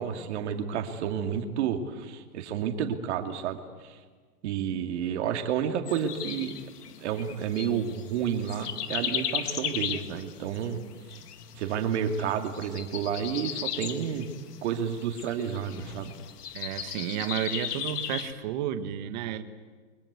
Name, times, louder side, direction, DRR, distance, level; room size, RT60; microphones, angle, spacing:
voice 1, 0.0-4.0 4.4-6.5 7.0-10.8 11.5-14.3 14.6-16.1, right 8 dB, 45° right, 5 dB, 2.6 m, -30 dB
sound 1, 5.9-18.3, left 9 dB, 85° left, 2.2 m, -37 dB
voice 2, 16.5-19.4, right 10 dB, 30° right, 9 dB, 1.3 m, -32 dB
29.0 x 24.0 x 8.3 m, 1.5 s
supercardioid pair, 180°, 45 cm